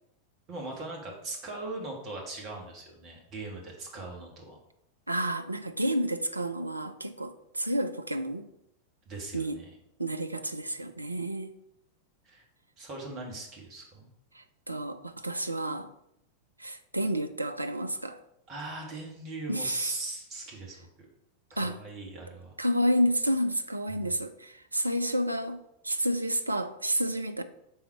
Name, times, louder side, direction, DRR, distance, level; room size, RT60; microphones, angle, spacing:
voice 1, 0.5-4.6 9.1-9.7 12.2-12.4 12.8-14.1 18.5-20.9 21.5-22.5 24.0-24.1, right 2 dB, 35° right, 1.7 m, -40 dB
voice 2, 5.1-8.5 9.3-9.6 10.0-11.6 14.3-15.9 16.6-18.2 19.5-19.9 21.6-21.8 22.6-27.4, equal, 85° right, 0.4 m, -30 dB
5.5 x 4.0 x 4.5 m
figure-of-eight pair, 90°, 0 cm